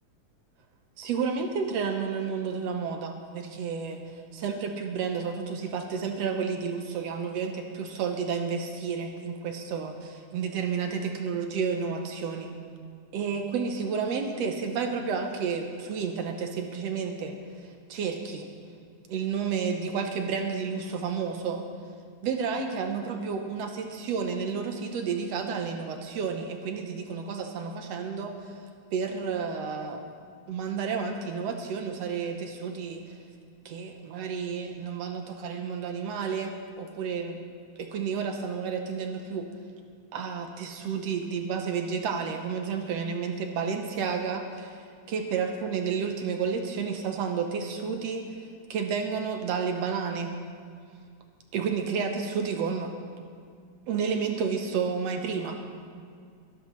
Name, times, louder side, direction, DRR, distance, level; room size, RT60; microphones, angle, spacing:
voice 1, 1.0-12.5 13.1-18.5 19.1-21.7 22.2-28.6 28.9-30.0 30.5-33.2 33.7-37.4 37.8-39.5 40.1-48.2 48.7-50.3 51.5-52.9 53.9-55.6, right 6 dB, 70° right, 4 dB, 1.7 m, -31 dB
24.0 x 11.0 x 3.1 m, 2.2 s
omnidirectional pair, 3.4 m